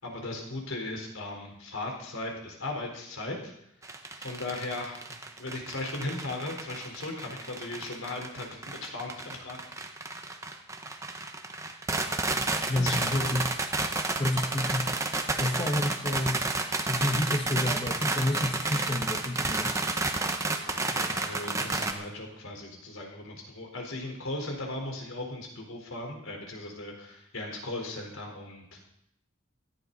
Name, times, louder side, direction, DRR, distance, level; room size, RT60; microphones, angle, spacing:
voice 1, 0.0-3.5 3.8-3.9 4.2-9.6 12.7-13.4 15.7-15.9 20.7-28.8, left 2 dB, 80° left, 1 dB, 4.2 m, -37 dB
sound 1, 3.8-21.9, right 3 dB, 15° right, 0.9 m, -31 dB
voice 2, 12.7-13.5 14.2-16.4 16.9-19.8, left 1 dB, 25° left, 3 dB, 1.1 m, -30 dB
17.5 x 14.0 x 4.1 m, 0.76 s
head